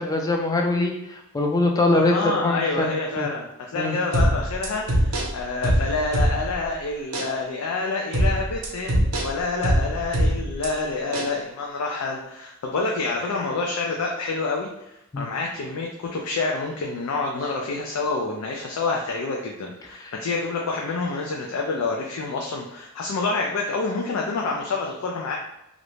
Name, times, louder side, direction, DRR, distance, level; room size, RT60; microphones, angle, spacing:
voice 1, 0.0-3.3 3.7-4.0 15.1-15.3 20.0-20.1, left 2 dB, 15° left, 2 dB, 0.3 m, -23 dB
voice 2, 1.9-25.3, left 3 dB, 90° left, 0 dB, 0.4 m, -28 dB
sound 1, 4.1-6.7 7.1-7.3 8.1-10.7 11.1-11.3, right 1 dB, 85° right, 0.6 m, -23 dB
2.5 x 2.1 x 3.0 m, 0.89 s
head